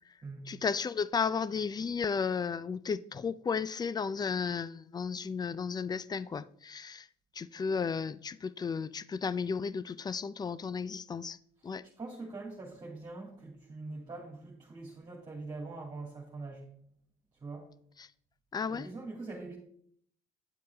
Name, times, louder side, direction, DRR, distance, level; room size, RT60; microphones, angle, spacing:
voice 1, 0.5-7.1 7.3-11.4 11.6-11.8 18.0-18.1 18.5-18.9, left 5 dB, 25° left, 0.4 m, -34 dB
voice 2, 11.8-16.7 17.4-17.7 18.7-19.6, right 3 dB, 25° right, 2.3 m, -43 dB
9.4 x 8.5 x 3.4 m
cardioid pair, 110°, 17 cm